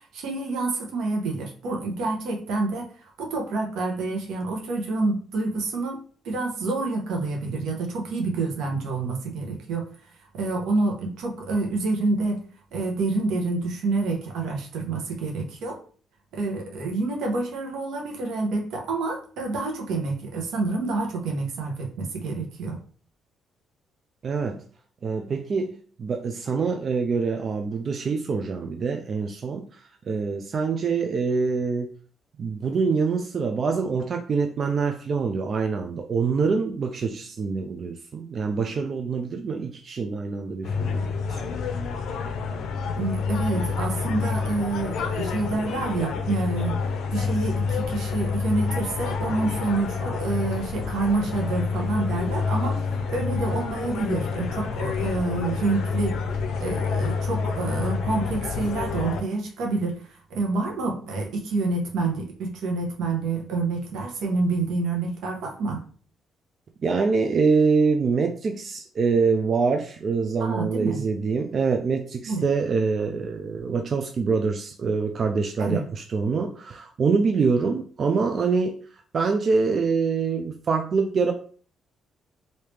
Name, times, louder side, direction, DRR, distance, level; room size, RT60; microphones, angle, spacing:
voice 1, 0.1-6.0 6.2-9.9 10.3-12.4 12.7-15.8 16.3-22.8 42.9-46.8 47.1-56.2 56.6-65.8 70.4-71.0 72.3-72.5 75.6-75.9, right 3 dB, 85° right, 1 dB, 1.0 m, -28 dB
voice 2, 24.2-24.6 25.0-31.9 32.4-41.5 66.8-78.7 79.1-81.3, right 4 dB, 50° right, 4 dB, 0.4 m, -25 dB
sound 1, 40.6-59.2, left 5 dB, 80° left, 0.5 m, -28 dB
3.2 x 2.7 x 3.3 m, 0.44 s
cardioid pair, 90°, 0 cm